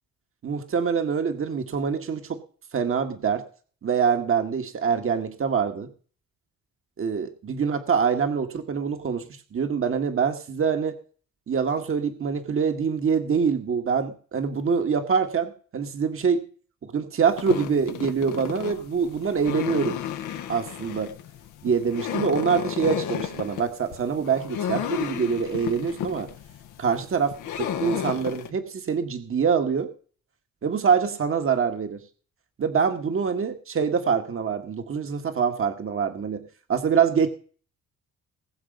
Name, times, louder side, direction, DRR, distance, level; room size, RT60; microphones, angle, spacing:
voice 1, 0.4-2.4 2.7-3.4 3.8-5.9 7.0-11.0 11.5-16.4 16.8-20.0 20.5-21.1 21.6-26.3 26.8-29.9 30.6-32.0 32.6-36.4 36.7-37.3, right 6 dB, 45° right, 6 dB, 1.9 m, -25 dB
sound 1, 17.3-28.5, left 9 dB, 80° left, 1.5 m, -33 dB
20.5 x 6.9 x 5.4 m, 0.43 s
cardioid pair, 90°, 30 cm